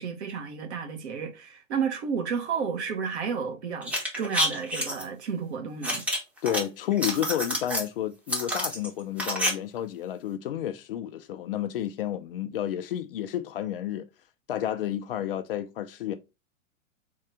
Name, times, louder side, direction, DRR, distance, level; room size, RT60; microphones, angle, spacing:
voice 1, 0.0-6.0, right 6 dB, 55° right, 1.1 m, -32 dB
sound 1, 3.8-5.0 5.8-6.6 6.9-7.9 8.3-9.5 9.8-9.9, equal, 5° right, 0.7 m, -28 dB
voice 2, 6.4-14.1 14.5-16.1, left 11 dB, 45° left, 0.4 m, -31 dB
3.8 x 2.4 x 3.3 m
figure-of-eight pair, 100°, 40 cm